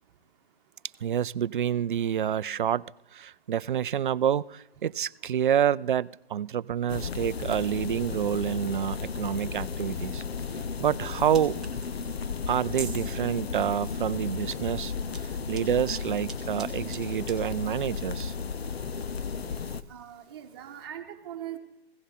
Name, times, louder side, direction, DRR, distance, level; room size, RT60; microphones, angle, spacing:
voice 1, 1.0-2.9 3.1-10.2 10.8-11.6 12.5-14.9 15.5-18.3, right 9 dB, 55° right, 19 dB, 0.4 m, -28 dB
sound 1, 6.9-19.8, left 5 dB, 75° left, 0.9 m, -34 dB
sound 2, 11.1-20.9, right 5 dB, ahead, 0.6 m, -49 dB
voice 2, 19.9-21.6, right 11 dB, 25° right, 2 dB, 1.5 m, -41 dB
16.5 x 16.5 x 4.2 m, 0.82 s
hypercardioid pair, 160°, 31 cm